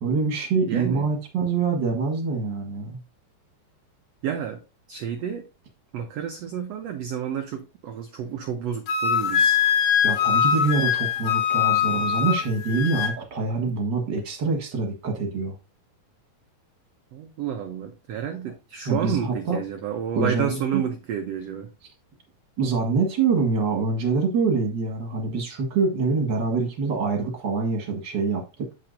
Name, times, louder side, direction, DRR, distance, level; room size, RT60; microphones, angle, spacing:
voice 1, 0.0-3.0 10.0-15.5 18.8-19.6 20.1-20.8 22.6-28.7, right 4 dB, 45° right, 2 dB, 1.7 m, -25 dB
voice 2, 0.7-1.1 4.2-4.6 4.9-5.5 5.9-9.6 17.1-21.7, right 8 dB, 85° right, 6 dB, 1.4 m, -30 dB
Wind instrument woodwind instrument, 8.9-13.2, left 8 dB, 75° left, 2.9 m, -22 dB
7.7 x 7.3 x 2.6 m, 0.29 s
omnidirectional pair, 3.9 m